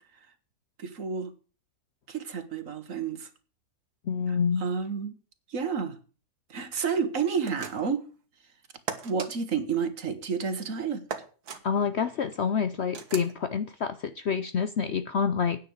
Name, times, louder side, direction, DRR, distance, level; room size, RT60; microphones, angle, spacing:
voice 1, 0.8-1.3 2.1-3.3 4.3-5.2 5.5-6.0 6.5-8.1 9.0-11.0, right 6 dB, 55° right, 1.6 m, -30 dB
voice 2, 4.1-4.6 11.6-15.7, left 6 dB, 55° left, 0.8 m, -27 dB
sound 1, 7.4-8.0 8.9-9.3 11.1-11.6 12.9-13.3, right 6 dB, 70° right, 1.8 m, -37 dB
9.8 x 6.7 x 7.9 m
omnidirectional pair, 1.7 m